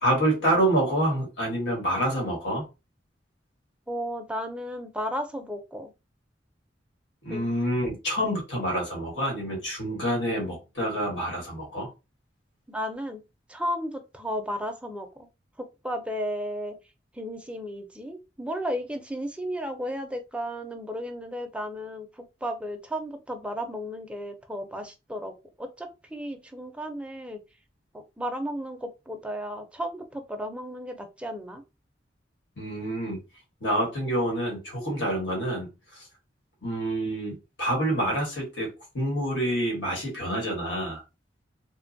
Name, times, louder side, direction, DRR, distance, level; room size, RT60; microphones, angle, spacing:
voice 1, 0.0-2.6 7.2-11.9 32.6-33.2 33.6-36.0 36.6-38.7 38.9-41.0, right 1 dB, 90° left, -1 dB, 1.3 m, -27 dB
voice 2, 3.9-5.9 7.3-7.5 12.7-13.2 13.5-15.3 15.6-16.7 17.1-25.3 25.6-27.4 27.9-31.6, equal, 5° right, 5 dB, 0.4 m, -34 dB
3.0 x 2.2 x 2.5 m, 0.26 s
head